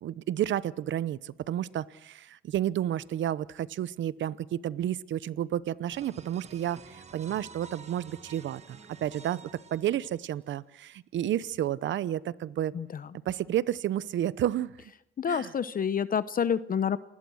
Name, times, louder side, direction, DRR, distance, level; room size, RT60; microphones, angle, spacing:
voice 1, 0.0-12.7 13.2-14.7 15.3-15.5, right 11 dB, 70° right, 18 dB, 0.9 m, -31 dB
sound 1, 5.9-10.5, right 5 dB, 35° right, 1.6 m, -50 dB
voice 2, 12.7-13.1 15.2-17.0, left 7 dB, 45° left, 15 dB, 0.8 m, -28 dB
28.5 x 20.0 x 6.3 m, 0.81 s
cardioid pair, 90°, 20 cm